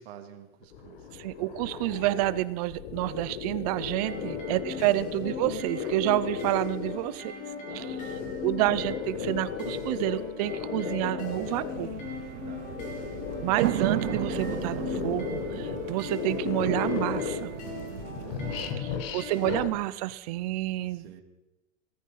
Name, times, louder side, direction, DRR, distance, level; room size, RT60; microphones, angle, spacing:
voice 1, 0.0-1.1 4.0-4.2 4.7-4.9 7.7-8.4 9.1-9.2 12.5-12.8 18.1-19.5 20.9-21.2, right 10 dB, 60° right, 4 dB, 2.6 m, -49 dB
sound 1, 0.6-7.2 7.6-12.0 12.5-17.7 18.0-19.7, left 7 dB, 55° left, 1.6 m, -36 dB
voice 2, 1.2-7.3 7.7-7.9 8.4-11.9 13.4-17.5 18.8-21.2, right 17 dB, 35° right, 17 dB, 0.5 m, -29 dB
sound 2, 3.8-19.6, left 5 dB, 20° left, 2.6 m, -40 dB
sound 3, 11.3-18.7, right 15 dB, 90° right, 0.7 m, -35 dB
19.0 x 13.5 x 5.6 m, 0.97 s
supercardioid pair, 170°, 35 cm